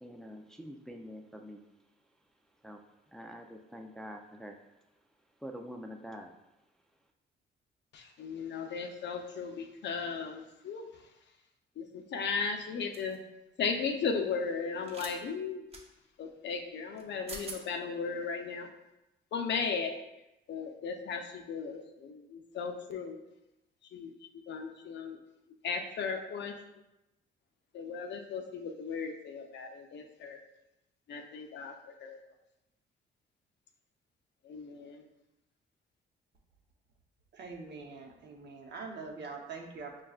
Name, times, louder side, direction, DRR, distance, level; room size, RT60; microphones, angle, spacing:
voice 1, 0.0-1.6 2.6-2.8 3.1-4.6 5.4-6.3, equal, ahead, 3 dB, 0.4 m, -45 dB
voice 2, 7.9-11.1 11.8-13.2 13.6-15.7 16.2-18.7 19.3-20.0 20.5-23.2 23.8-25.2 25.6-26.9 27.7-30.4 31.1-32.2 34.4-35.1, left 5 dB, 65° left, 4 dB, 0.6 m, -36 dB
sound 1, 12.9-13.2 14.8-15.1 15.7-15.8 17.0-17.1 17.3-17.6, right 3 dB, 30° right, 0.8 m, -43 dB
voice 3, 37.3-40.0, right 4 dB, 60° right, 2 dB, 0.8 m, -44 dB
6.2 x 2.3 x 2.4 m, 0.93 s
cardioid pair, 90°, 20 cm